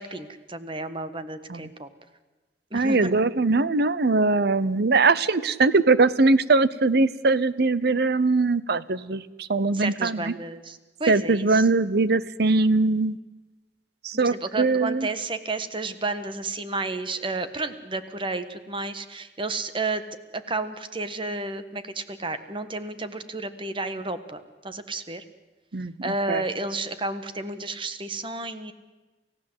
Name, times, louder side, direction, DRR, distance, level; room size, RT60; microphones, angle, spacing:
voice 1, 0.0-1.9 2.7-3.1 9.7-11.6 14.2-20.0 20.3-25.2 26.0-28.7, right 3 dB, 30° right, 11 dB, 1.4 m, -32 dB
voice 2, 2.7-10.3 11.1-13.2 14.0-15.1 25.7-26.4, right 3 dB, 65° right, 17 dB, 0.8 m, -21 dB
29.0 x 15.5 x 8.0 m, 1.2 s
head